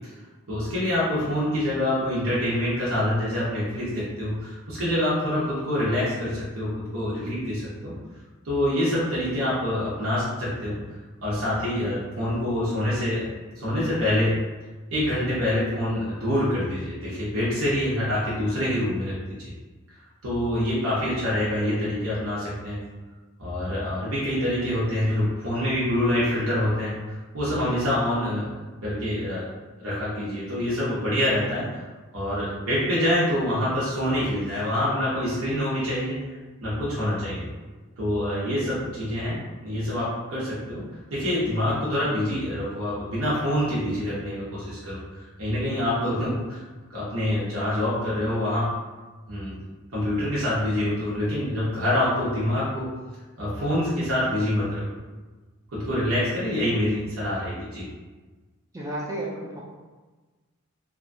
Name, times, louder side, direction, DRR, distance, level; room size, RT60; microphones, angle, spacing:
voice 1, 0.5-7.9 8.4-10.8 11.2-13.3 13.6-14.4 14.9-19.5 20.2-22.8 23.4-28.5 28.8-29.5 29.8-31.8 32.1-36.2 36.6-37.5 38.0-40.8 41.1-46.6 46.9-48.7 49.3-49.6 49.9-52.9 53.4-54.8 55.7-57.8, left 1 dB, 90° right, -9 dB, 0.9 m, -26 dB
voice 2, 58.7-59.6, right 1 dB, 15° right, -4 dB, 0.3 m, -32 dB
2.8 x 2.3 x 2.6 m, 1.3 s
head